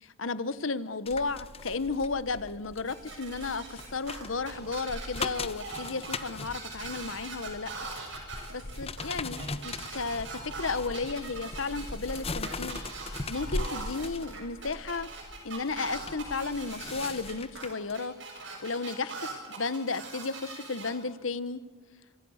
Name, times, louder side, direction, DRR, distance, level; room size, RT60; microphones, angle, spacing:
voice 1, 0.0-7.7 8.5-12.8 13.3-15.1 15.4-18.1 18.6-21.6, left 4 dB, 85° left, 15 dB, 1.2 m, -33 dB
sound 1, 1.1-17.9 18.4-18.6, left 3 dB, 30° left, 1.1 m, -40 dB
sound 2, 2.9-20.9, right 4 dB, 65° right, 7.1 m, -42 dB
27.0 x 26.0 x 6.5 m, 1.4 s
head